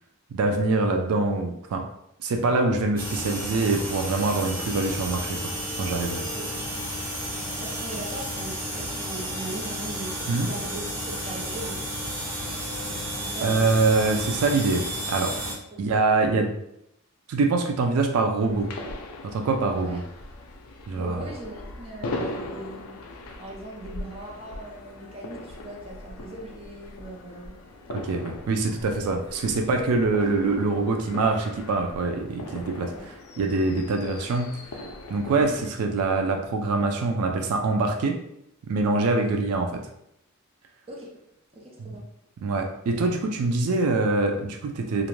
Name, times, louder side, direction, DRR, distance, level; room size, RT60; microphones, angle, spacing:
voice 1, 0.3-1.8 2.2-5.4 5.8-6.2 10.3-10.5 13.4-15.3 15.8-16.5 17.3-18.7 19.2-20.0 20.9-21.2 27.9-34.6 35.1-38.1 38.6-39.7 41.8-42.0 42.4-45.1, right 3 dB, 80° right, 3 dB, 0.4 m, -24 dB
sound 1, 3.0-15.5, right 1 dB, 45° right, 1.2 m, -32 dB
voice 2, 7.3-11.8 13.2-13.7 15.7-15.8 19.6-20.0 20.7-23.0 23.4-27.6 32.8-33.0 35.3-35.6 39.2-39.3 40.9-41.1 41.5-42.0, right 1 dB, 25° right, -3 dB, 0.5 m, -40 dB
sound 2, 18.4-35.7, left 2 dB, 75° left, 0.4 m, -39 dB
2.4 x 2.1 x 3.0 m, 0.78 s
head